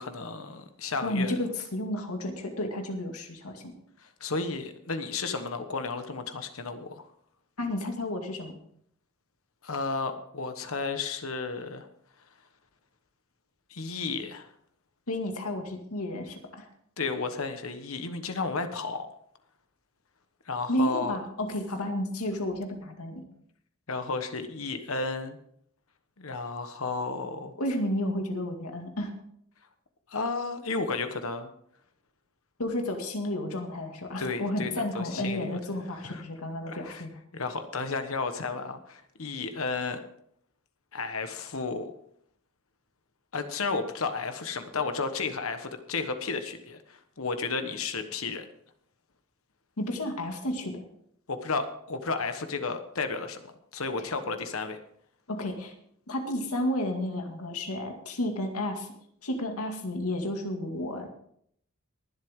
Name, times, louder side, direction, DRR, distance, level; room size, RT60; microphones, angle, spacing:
voice 1, 0.0-1.3 4.0-7.1 9.6-11.9 13.7-14.5 17.0-19.1 20.4-21.2 23.9-25.4 26.2-27.5 30.1-31.5 34.2-35.6 36.0-36.2 36.7-37.0 37.3-40.0 40.9-41.9 43.3-48.4 51.3-54.8, left 4 dB, 70° left, 8 dB, 1.2 m, -33 dB
voice 2, 1.0-3.7 7.6-8.5 15.1-16.7 20.7-23.2 27.6-29.1 32.6-37.1 49.8-50.8 54.0-54.1 55.3-55.7 56.1-58.9 59.2-61.1, left 1 dB, 85° left, 4 dB, 2.2 m, -32 dB
23.0 x 7.9 x 3.7 m, 0.68 s
head